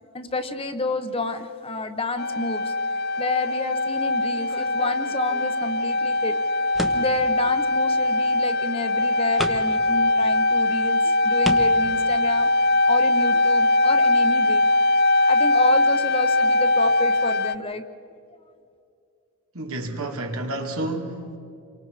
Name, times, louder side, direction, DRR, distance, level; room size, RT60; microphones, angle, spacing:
voice 1, 0.1-2.7 3.2-6.4 6.9-12.5 12.9-17.8, left 2 dB, 25° left, 1.0 m, -29 dB
sound 1, 2.2-17.5, left 2 dB, 45° left, 0.4 m, -21 dB
sound 2, 4.5-5.4 6.7-7.3 8.6-8.7 9.4-9.8 10.6-10.7 11.4-11.9, equal, ahead, 1.0 m, -32 dB
voice 2, 19.5-21.4, right 1 dB, 80° right, 2.4 m, -30 dB
28.0 x 24.0 x 4.9 m
head